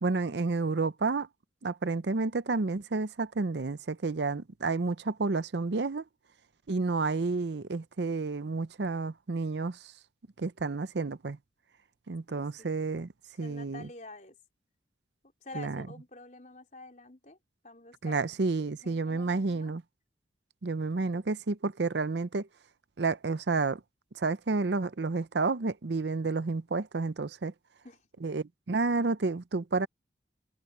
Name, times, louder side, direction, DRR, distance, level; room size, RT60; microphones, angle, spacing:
voice 1, 0.0-1.3 1.6-6.0 6.7-9.8 10.4-11.4 12.1-13.1 13.4-13.9 15.5-15.9 18.0-19.8 20.6-22.5 23.0-23.8 24.1-27.5 28.2-29.9, right 3 dB, 65° right, 0.6 m, -30 dB
voice 2, 12.3-12.9 13.4-14.4 15.4-17.4 17.6-18.2 18.6-19.7 27.8-28.0, left 2 dB, 40° left, 4.1 m, -48 dB
head